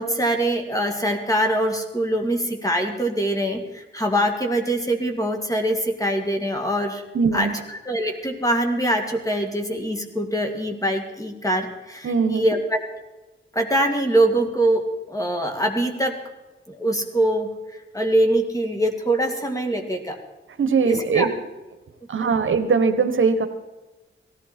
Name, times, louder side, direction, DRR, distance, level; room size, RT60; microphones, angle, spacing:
voice 1, 0.0-7.0 7.3-12.8 13.5-14.8 15.1-16.2 16.7-17.5 17.9-20.2 20.8-21.3 22.2-22.3, right 1 dB, 15° left, 4 dB, 2.2 m, -23 dB
voice 2, 7.1-7.5 12.0-12.5 20.6-21.3 22.1-23.5, right 5 dB, 70° right, 8 dB, 1.2 m, -20 dB
18.0 x 14.5 x 4.4 m, 1.1 s
wide cardioid pair, 95°, 21 cm